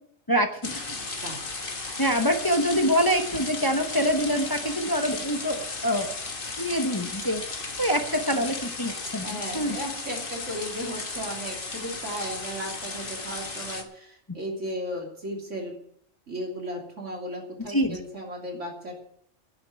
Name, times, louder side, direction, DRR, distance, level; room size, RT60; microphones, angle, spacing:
voice 1, 0.3-0.9 2.0-6.1 6.4-7.4 7.8-9.8 17.7-18.0, equal, 20° left, 5 dB, 0.9 m, -25 dB
sound 1, 0.6-13.8, left 3 dB, 45° left, 1.6 m, -35 dB
voice 2, 9.2-15.7 16.3-18.9, equal, 75° right, 0 dB, 3.4 m, -35 dB
10.5 x 7.4 x 9.5 m, 0.69 s
omnidirectional pair, 1.3 m